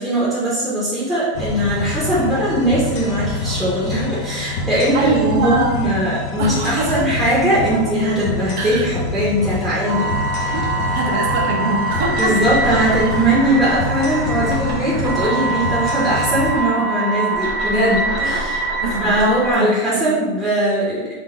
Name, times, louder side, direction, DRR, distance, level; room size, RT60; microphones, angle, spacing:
voice 1, 0.0-10.5 12.2-18.7 19.0-21.1, right 1 dB, 5° right, -9 dB, 0.8 m, -20 dB
sound 1, 1.3-16.6, left 3 dB, 45° left, 0.6 m, -26 dB
voice 2, 4.7-5.8 6.4-7.0 8.6-8.9 10.5-12.4 18.8-20.2, right 2 dB, 60° right, 0 dB, 0.9 m, -23 dB
sound 2, 9.9-19.5, right 2 dB, 45° right, 1.2 m, -23 dB
3.8 x 2.2 x 4.4 m, 1.2 s
supercardioid pair, 160°, 0 cm